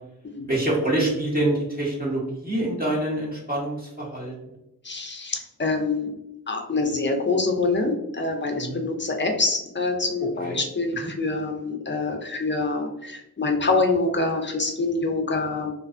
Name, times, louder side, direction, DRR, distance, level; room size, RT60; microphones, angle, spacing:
voice 1, 0.5-4.3 8.5-8.8 10.4-10.6 11.0-11.1, right 1 dB, 25° right, -5 dB, 0.8 m, -26 dB
voice 2, 4.8-6.1 6.5-15.7, left 3 dB, 30° left, 3 dB, 0.4 m, -25 dB
2.5 x 2.2 x 2.4 m, 0.88 s
cardioid pair, 45°, 38 cm